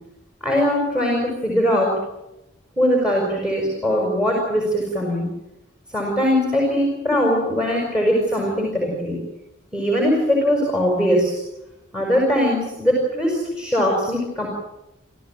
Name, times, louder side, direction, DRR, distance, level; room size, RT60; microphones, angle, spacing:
voice 1, 0.4-2.0 2.8-5.3 5.9-9.2 9.7-11.4 11.9-14.5, equal, 5° right, -1 dB, 6.0 m, -21 dB
28.5 x 15.0 x 9.4 m, 0.94 s
head